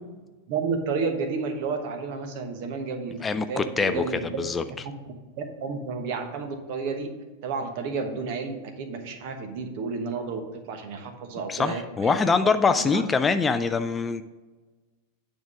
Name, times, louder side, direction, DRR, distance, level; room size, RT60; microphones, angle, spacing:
voice 1, 0.5-3.2 3.5-4.4 4.8-4.9 5.4-7.1 7.4-12.1 12.4-12.5 12.8-13.0, right 4 dB, 50° right, 6 dB, 1.1 m, -31 dB
voice 2, 3.2-4.0 4.4-4.6 11.5-14.2, left 5 dB, 15° left, 10 dB, 0.3 m, -24 dB
9.4 x 3.7 x 6.0 m, 1.3 s
figure-of-eight pair, 90°, 0 cm